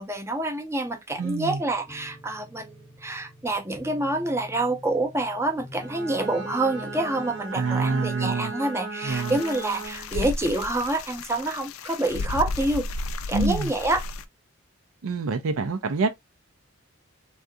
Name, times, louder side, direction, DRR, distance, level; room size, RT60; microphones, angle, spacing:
voice 1, 0.0-12.9 13.3-14.0, right 2 dB, 15° right, 0.5 m, -27 dB
voice 2, 1.2-1.6 7.5-8.5 9.0-9.4 13.3-13.7 15.0-16.1, right 4 dB, 80° right, 0.5 m, -26 dB
sound 1, 1.5-7.4, left 1 dB, 10° left, 0.8 m, -46 dB
Bowed string instrument, 5.7-10.2, right 3 dB, 60° right, 0.8 m, -36 dB
sound 2, 9.1-14.2, left 3 dB, 85° left, 0.4 m, -33 dB
3.6 x 2.4 x 2.5 m
head